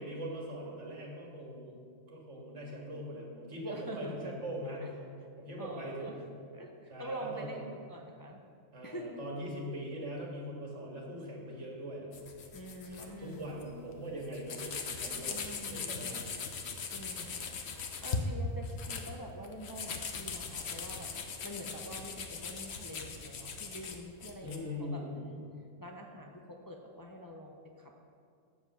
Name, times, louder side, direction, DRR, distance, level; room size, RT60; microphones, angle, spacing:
voice 1, 0.0-1.7 2.1-4.9 5.4-6.3 6.9-7.6 7.9-8.1 8.7-12.1 12.9-15.4 15.7-16.4 24.4-25.3, equal, 75° right, -2 dB, 2.1 m, -41 dB
voice 2, 3.7-4.3 4.8-4.9 5.6-6.1 6.5-8.4 8.8-9.2 12.5-13.5 15.3-16.1 16.9-17.5 18.0-21.1 21.4-25.4 25.8-28.0, equal, 25° left, 1 dB, 0.5 m, -45 dB
sound 1, 12.1-13.1 13.4-13.6 13.9-14.0 14.2-18.2 18.6-24.6, left 5 dB, 65° left, 1.1 m, -40 dB
7.9 x 7.4 x 6.7 m, 2.4 s
omnidirectional pair, 1.2 m